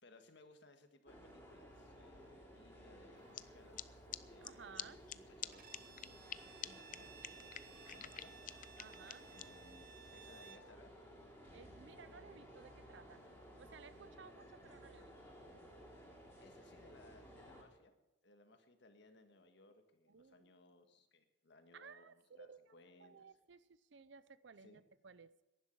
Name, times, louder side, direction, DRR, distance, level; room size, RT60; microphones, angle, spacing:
voice 1, 0.0-8.8 9.3-10.9 15.6-15.7 16.4-17.9 18.2-23.2 24.6-24.8, left 2 dB, 65° left, 7 dB, 1.7 m, -64 dB
sound 1, 1.1-17.6, equal, 10° left, 3.8 m, -57 dB
sound 2, 3.3-3.4 3.8-3.9 4.1-4.2 4.4-4.5 4.8-4.9 5.1-5.2 5.4-5.5 5.7-6.4 6.6-6.7 6.9-7.0 7.2-9.4, left 12 dB, 45° left, 0.5 m, -45 dB
voice 2, 4.4-5.0 8.8-9.3 11.5-13.2 13.6-15.1 20.1-20.5 21.7-22.7 23.0-25.4, right 5 dB, 65° right, 16 dB, 0.6 m, -58 dB
Bowed string instrument, 5.5-10.7, right 6 dB, 50° right, 1.2 m, -58 dB
11.0 x 11.0 x 8.1 m, 1.0 s
head